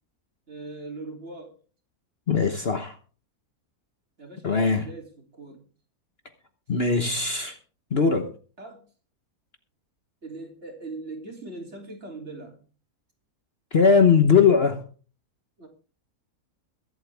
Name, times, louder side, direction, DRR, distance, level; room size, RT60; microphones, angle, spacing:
voice 1, 0.5-1.6 4.2-5.6 8.6-8.8 10.2-12.6 15.6-15.7, right 3 dB, 45° right, 3.8 m, -40 dB
voice 2, 2.3-2.9 4.4-4.9 6.7-7.6 7.9-8.3 13.7-14.8, left 5 dB, 45° left, 1.3 m, -20 dB
23.0 x 8.1 x 3.5 m
omnidirectional pair, 1.6 m